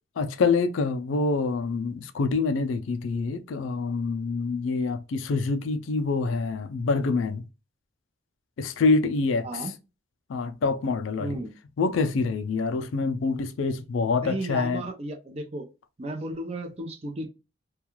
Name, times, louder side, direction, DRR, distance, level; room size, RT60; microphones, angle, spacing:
voice 1, 0.2-7.4 8.6-9.6 10.3-11.4 11.8-14.8, left 4 dB, 80° left, 0.4 m, -26 dB
voice 2, 9.4-9.8 11.2-11.6 14.2-15.7 16.0-17.3, right 1 dB, 30° right, 0.5 m, -34 dB
2.3 x 2.3 x 2.9 m
head